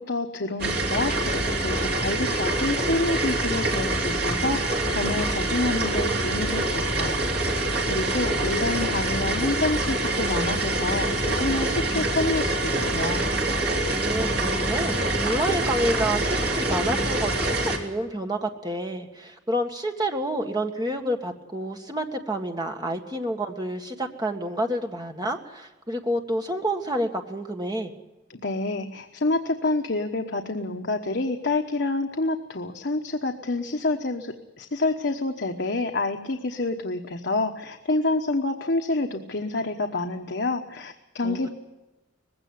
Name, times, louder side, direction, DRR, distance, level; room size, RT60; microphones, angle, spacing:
voice 1, 0.0-7.2 7.9-13.2 28.3-41.5, left 2 dB, 60° left, 4 dB, 1.2 m, -28 dB
sound 1, 0.6-17.8, right 2 dB, 50° right, 3.5 m, -25 dB
voice 2, 13.9-27.9 41.2-41.5, right 1 dB, 20° right, 4 dB, 1.7 m, -29 dB
20.0 x 16.5 x 9.3 m, 1.1 s
head